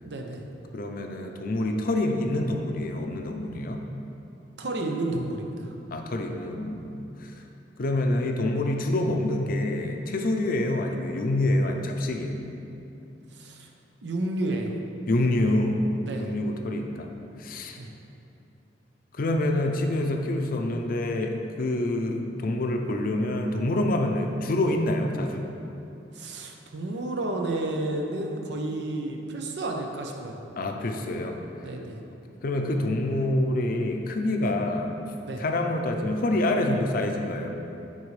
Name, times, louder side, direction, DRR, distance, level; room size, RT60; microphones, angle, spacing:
voice 1, 0.0-0.4 4.6-5.7 13.3-13.7 14.0-14.7 16.0-16.3 17.8-17.9 26.1-30.4 31.6-32.0 34.4-34.5 35.2-35.4, right 2 dB, 70° right, 2 dB, 0.7 m, -31 dB
voice 2, 0.7-3.8 5.9-7.3 7.8-12.5 15.1-15.8 16.2-17.1 17.4-17.8 19.1-25.5 30.6-31.3 32.4-34.9 35.4-37.5, left 1 dB, 50° left, 3 dB, 0.5 m, -26 dB
9.7 x 4.1 x 3.2 m, 2.8 s
head